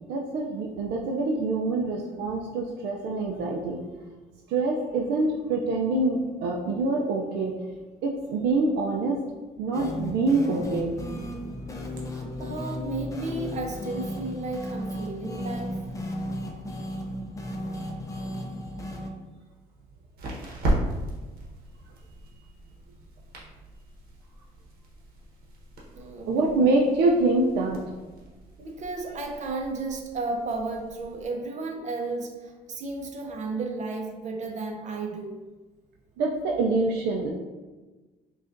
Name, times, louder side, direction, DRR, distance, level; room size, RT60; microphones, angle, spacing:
voice 1, 0.1-3.8 4.5-7.5 8.0-9.2 9.6-11.0 26.3-27.8 36.2-37.3, right 3 dB, 80° right, -1 dB, 0.5 m, -25 dB
sound 1, 9.7-19.1, left 1 dB, 20° left, 0.5 m, -35 dB
voice 2, 12.4-15.8 26.0-26.5 28.6-35.4, right 3 dB, 45° right, 2 dB, 0.7 m, -33 dB
sound 2, 18.9-31.3, right 1 dB, 60° right, 1.0 m, -36 dB
4.9 x 2.4 x 2.5 m, 1.2 s
cardioid pair, 110°, 17 cm